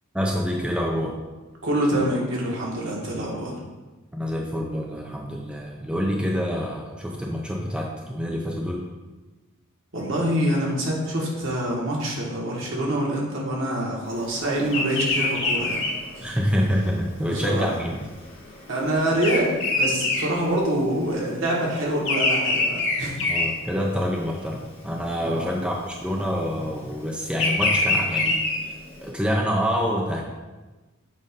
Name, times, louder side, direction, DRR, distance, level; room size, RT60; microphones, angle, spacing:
voice 1, 0.1-1.2 4.1-8.9 16.2-18.1 23.2-28.4 29.0-30.2, equal, 5° right, -1 dB, 0.5 m, -26 dB
voice 2, 1.6-3.6 9.9-15.9 16.2-16.4 17.2-17.7 18.7-23.3 25.2-25.4, right 1 dB, 65° right, -3 dB, 1.5 m, -26 dB
Bird vocalization bird call bird song, 14.7-21.1 21.4-24.2 24.7-25.1 26.0-29.0, left 2 dB, 65° left, 1.9 m, -25 dB
7.5 x 2.6 x 5.1 m, 1.2 s
head